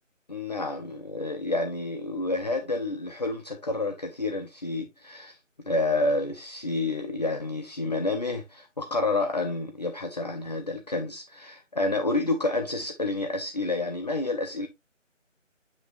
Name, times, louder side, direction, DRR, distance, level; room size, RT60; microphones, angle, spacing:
voice 1, 0.3-5.4 5.6-14.7, left 2 dB, 35° left, 0.7 m, -29 dB
7.5 x 6.3 x 2.6 m
figure-of-eight pair, 165°, 38 cm